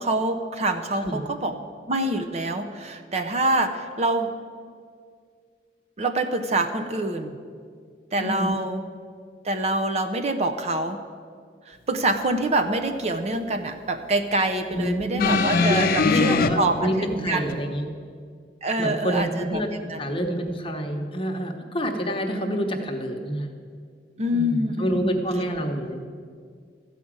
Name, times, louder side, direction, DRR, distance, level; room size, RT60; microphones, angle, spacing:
voice 1, 0.0-1.5 1.9-4.4 6.0-7.4 8.1-8.8 9.4-11.0 11.7-16.9 17.3-17.6 18.6-20.0 24.2-25.2, right 2 dB, 40° right, 7 dB, 0.6 m, -25 dB
voice 2, 8.2-8.6 14.7-15.4 15.7-17.9 18.8-23.5 24.3-26.0, equal, 30° left, 3 dB, 1.0 m, -27 dB
sound 1, 15.2-16.5 17.5-17.6, left 4 dB, 55° left, 0.6 m, -21 dB
13.0 x 5.0 x 8.7 m, 2.1 s
head